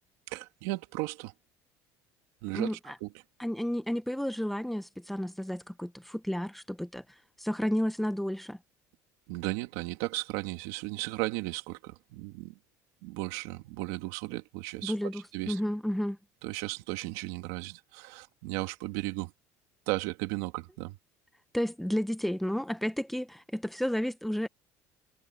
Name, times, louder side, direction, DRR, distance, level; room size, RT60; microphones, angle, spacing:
voice 1, 0.3-1.3 2.4-3.1 9.3-12.6 13.0-15.6 16.4-19.3 19.9-21.0, right 21 dB, 85° right, 2.5 m, -35 dB
voice 2, 2.5-2.9 3.4-7.0 7.4-8.6 14.8-16.2 21.5-24.5, equal, ahead, 1.1 m, -32 dB
cardioid pair, 125°, 7 cm